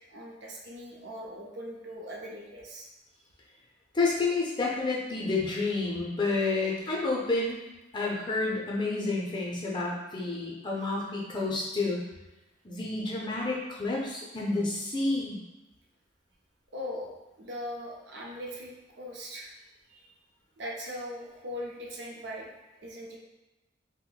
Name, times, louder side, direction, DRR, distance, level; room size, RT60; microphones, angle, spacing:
voice 1, 0.1-2.9 16.7-17.1 17.4-19.5 19.9-20.0 20.6-22.5 22.7-23.2, equal, 60° right, -2 dB, 0.6 m, -40 dB
voice 2, 3.9-7.6 7.9-12.0 12.6-15.4, left 3 dB, 25° left, -4 dB, 0.5 m, -29 dB
2.6 x 2.1 x 3.9 m, 1.0 s
head